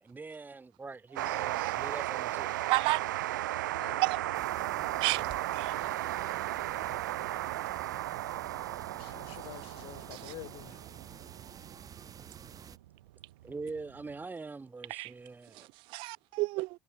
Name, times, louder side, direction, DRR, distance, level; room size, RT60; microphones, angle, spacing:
voice 1, 0.0-2.5 5.1-5.4 13.4-15.7, right 3 dB, 20° right, 1.7 m, -43 dB
sound 1, 1.2-14.1, right 15 dB, 70° right, 0.9 m, -35 dB
voice 2, 1.3-1.8 2.7-3.0 4.0-4.2 5.0-5.2 5.5-5.7 14.9-15.1 15.9-16.7, right 23 dB, 55° right, 0.4 m, -30 dB
sound 2, 4.3-12.8, right 8 dB, 35° right, 1.9 m, -49 dB
voice 3, 9.0-10.8, left 23 dB, 60° left, 4.6 m, -47 dB
figure-of-eight pair, 65°, 10 cm